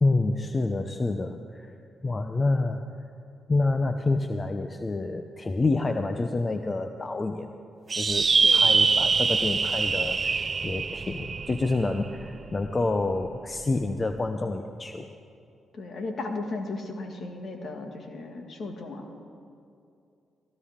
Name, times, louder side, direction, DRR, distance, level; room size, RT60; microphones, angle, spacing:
voice 1, 0.0-1.7 2.0-2.8 3.5-7.5 8.0-15.1, left 3 dB, 35° left, 7 dB, 0.8 m, -28 dB
sound 1, 7.9-12.6, right 4 dB, 45° right, 0.4 m, -24 dB
voice 2, 8.4-8.8 15.7-19.2, left 3 dB, 60° left, 4 dB, 2.1 m, -36 dB
19.5 x 16.0 x 3.7 m, 2.5 s
supercardioid pair, 50°, 0 cm